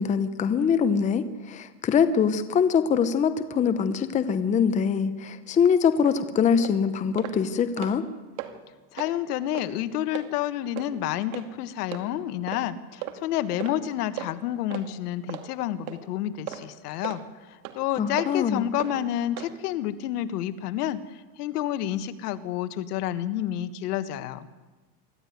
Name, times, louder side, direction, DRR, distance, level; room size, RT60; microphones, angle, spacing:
voice 1, 0.0-8.0 18.0-18.7, left 6 dB, 15° left, 11 dB, 0.9 m, -23 dB
sound 1, 6.0-6.2 6.6-6.8 7.2-7.4 7.7-8.1 8.4-8.5 8.9-9.1 9.5-9.7 10.1-10.3 10.8-10.9 11.3-11.5 11.9-12.0 12.5-12.6 13.0-13.2 13.6-13.8 14.2-14.3 14.7-14.9 15.3-15.5 15.9-16.0 16.5-16.6 17.0-17.2 17.6-17.8 18.2-18.3 18.8-18.9 19.4-19.5, right 14 dB, 55° right, 2.5 m, -36 dB
voice 2, 8.9-17.2 17.5-24.5, left 12 dB, 65° left, 11 dB, 1.7 m, -29 dB
24.0 x 14.0 x 9.5 m, 1.2 s
supercardioid pair, 145°, 49 cm